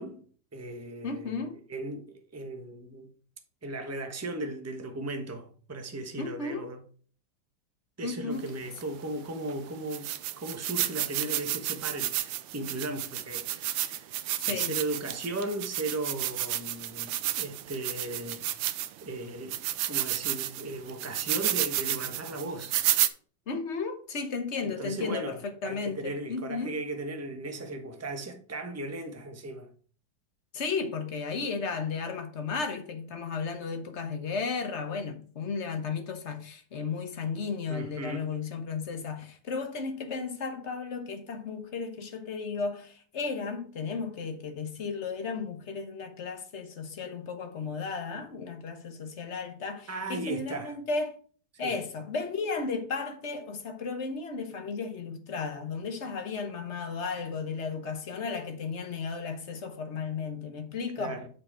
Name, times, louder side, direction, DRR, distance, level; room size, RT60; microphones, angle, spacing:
voice 1, 0.0-3.1 3.6-6.8 8.0-14.1 14.5-18.6 19.0-22.8 24.6-29.7 37.7-38.3 49.9-50.7 51.6-51.8 61.0-61.3, right 2 dB, 15° right, 0.6 m, -37 dB
voice 2, 1.0-1.6 6.2-6.7 8.0-8.5 14.4-14.8 23.5-26.8 30.5-51.2 51.6-61.2, left 5 dB, 45° left, 1.1 m, -34 dB
sound 1, 8.8-8.9 9.5-9.6 9.9-19.0 19.5-23.1, right 13 dB, 80° right, 1.3 m, -31 dB
6.9 x 5.3 x 4.3 m
omnidirectional pair, 2.2 m